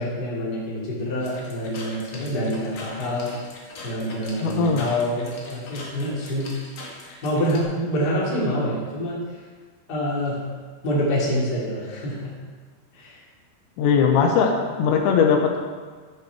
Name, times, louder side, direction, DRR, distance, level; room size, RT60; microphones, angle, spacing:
voice 1, 0.0-3.3 3.8-6.5 7.2-9.2 9.9-10.4 10.8-12.3 12.9-13.2, equal, 30° left, -6 dB, 2.3 m, -26 dB
sound 1, 1.2-7.6, left 2 dB, 60° left, 1.5 m, -41 dB
voice 2, 4.4-4.8 13.8-15.6, left 6 dB, 80° left, 2 dB, 3.1 m, -19 dB
12.5 x 7.5 x 4.7 m, 1.5 s
omnidirectional pair, 5.3 m